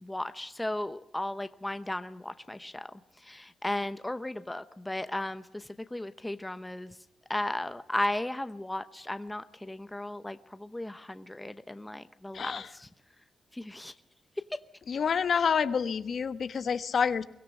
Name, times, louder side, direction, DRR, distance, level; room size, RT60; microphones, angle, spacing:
voice 1, 0.0-2.9 3.2-7.0 7.3-12.9 13.5-13.9, left 1 dB, 10° left, 11 dB, 0.8 m, -35 dB
voice 2, 12.3-12.7 14.9-17.2, left 6 dB, 55° left, 12 dB, 1.2 m, -28 dB
23.0 x 17.5 x 10.0 m, 0.82 s
cardioid pair, 120°, 0 cm